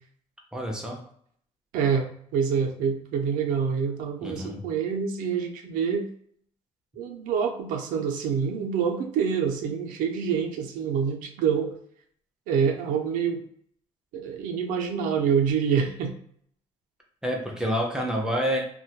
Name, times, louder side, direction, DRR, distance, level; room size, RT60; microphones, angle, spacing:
voice 1, 0.5-1.0 4.2-4.6 17.2-18.6, equal, 5° right, 0 dB, 0.4 m, -28 dB
voice 2, 1.7-6.1 7.0-11.7 12.5-13.4 14.1-16.2, right 7 dB, 85° right, 3 dB, 0.4 m, -26 dB
2.2 x 2.1 x 2.7 m, 0.64 s
cardioid pair, 165°, 14 cm